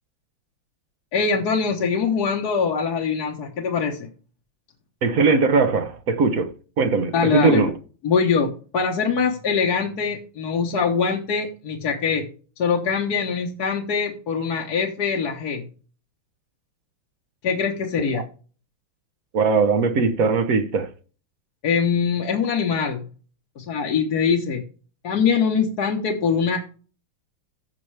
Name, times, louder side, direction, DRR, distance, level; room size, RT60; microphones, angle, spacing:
voice 1, 1.1-4.1 7.1-7.6 8.0-12.2 12.6-15.7 17.4-18.2 21.6-23.1 23.6-24.6 25.0-26.6, left 5 dB, 55° left, 1.6 m, -23 dB
voice 2, 5.0-6.5 6.8-7.7 18.1-18.2 19.3-20.9, right 4 dB, 50° right, 1.2 m, -20 dB
15.5 x 5.9 x 3.3 m
omnidirectional pair, 2.3 m